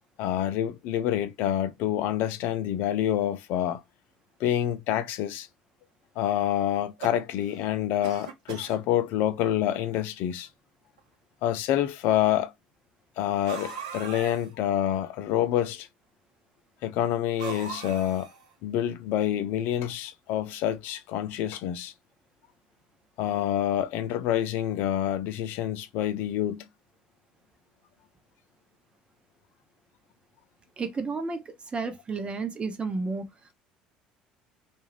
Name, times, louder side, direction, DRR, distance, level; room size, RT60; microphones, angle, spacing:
voice 1, 0.2-3.8 4.4-5.5 6.2-10.5 11.4-12.5 13.2-15.9 16.8-18.3 18.6-21.9 23.2-26.6, left 11 dB, 70° left, 0.5 m, -27 dB
sound 1, 6.7-7.6 8.0-8.8 9.6-9.7 9.9-10.0 11.0-11.1 13.4-14.5 17.4-18.5, right 6 dB, 85° right, 0.7 m, -39 dB
voice 2, 30.8-33.3, right 4 dB, 30° right, 0.8 m, -32 dB
2.5 x 2.3 x 3.2 m
hypercardioid pair, 70°, 4 cm